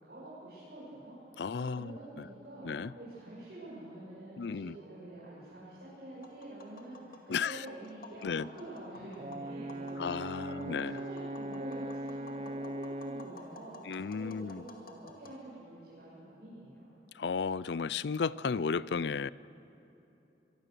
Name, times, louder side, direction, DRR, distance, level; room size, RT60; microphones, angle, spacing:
voice 1, 0.0-1.4 1.7-16.9, right 1 dB, 60° right, -10 dB, 7.9 m, -47 dB
voice 2, 1.4-2.3 2.6-2.9 4.4-4.8 7.3-7.7 8.2-8.5 10.0-11.0 13.9-14.6 17.1-19.3, left 5 dB, 75° left, 19 dB, 0.5 m, -34 dB
Tap, 6.1-15.4, left 2 dB, 50° left, 2.3 m, -54 dB
Brass instrument, 9.2-13.4, right 1 dB, 35° right, 0.6 m, -40 dB
24.0 x 23.5 x 6.8 m, 3.0 s
head